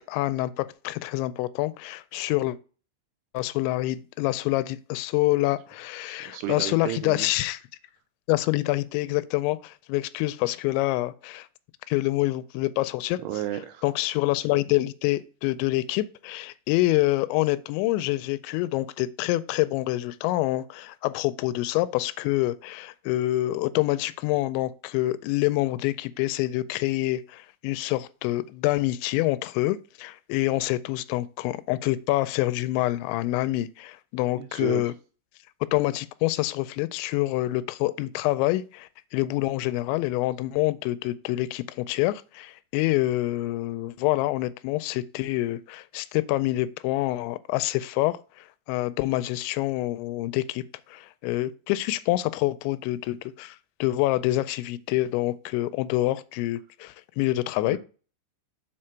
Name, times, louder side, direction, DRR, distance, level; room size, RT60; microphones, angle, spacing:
voice 1, 0.1-2.6 3.3-7.6 8.3-11.5 11.9-13.2 13.8-34.9 35.7-48.2 48.7-50.6 50.9-57.8, left 17 dB, 90° left, 2.9 m, -26 dB
voice 2, 6.1-7.3 13.2-13.8 34.4-34.8 57.7-57.8, right 13 dB, 85° right, 2.4 m, -33 dB
7.5 x 4.3 x 4.4 m
omnidirectional pair, 5.1 m